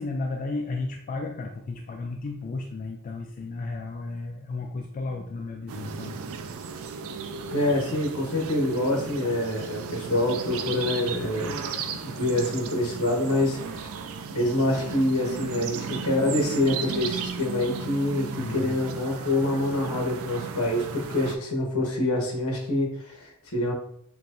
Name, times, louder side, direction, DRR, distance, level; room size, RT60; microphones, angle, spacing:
voice 1, 0.0-6.2 11.8-12.1 18.4-18.7, left 3 dB, 35° left, 2 dB, 0.3 m, -33 dB
sound 1, 5.7-21.4, right 6 dB, 65° right, 0.4 m, -35 dB
voice 2, 7.5-11.6 12.0-13.9 14.3-23.7, left 1 dB, 70° left, 0 dB, 1.1 m, -26 dB
5.7 x 2.2 x 2.5 m, 0.70 s
head